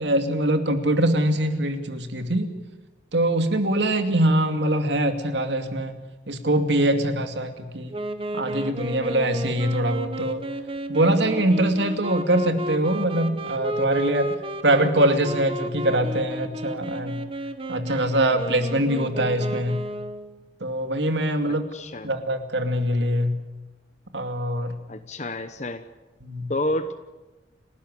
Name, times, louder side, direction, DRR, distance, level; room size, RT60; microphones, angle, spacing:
voice 1, 0.0-2.5 3.1-6.0 6.3-7.9 8.3-10.4 10.9-14.3 14.6-17.2 17.7-19.8 20.6-21.6 22.0-23.4 24.1-24.8 26.2-26.5, right 1 dB, 75° right, 7 dB, 2.5 m, -23 dB
Wind instrument woodwind instrument, 7.9-20.4, right 1 dB, 30° right, 1.6 m, -32 dB
voice 2, 21.5-22.1 24.9-25.8 26.5-26.9, left 1 dB, 40° left, 9 dB, 1.0 m, -29 dB
29.5 x 13.0 x 9.9 m, 1.2 s
head